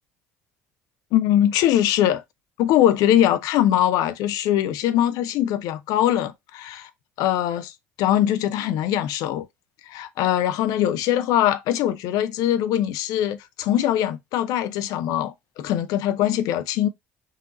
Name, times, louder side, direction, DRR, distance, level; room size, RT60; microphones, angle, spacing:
voice 1, 1.1-2.2 2.6-6.9 7.2-7.7 8.0-9.5 9.9-16.9, left 12 dB, 65° left, 0.5 m, -22 dB
4.0 x 2.6 x 3.8 m
hypercardioid pair, 60°, 7 cm